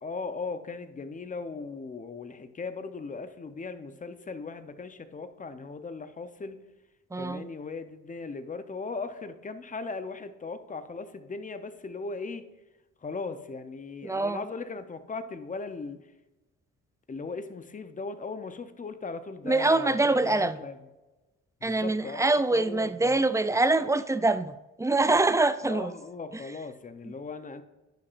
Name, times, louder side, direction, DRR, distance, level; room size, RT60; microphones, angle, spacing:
voice 1, 0.0-6.6 7.1-12.5 13.0-16.1 17.1-20.8 21.6-23.2 25.6-27.6, left 4 dB, 25° left, 0.7 m, -38 dB
voice 2, 7.1-7.5 14.0-14.4 19.5-20.6 21.6-25.9, right 2 dB, 10° right, 0.4 m, -24 dB
11.0 x 6.9 x 2.5 m
cardioid pair, 90°, 30 cm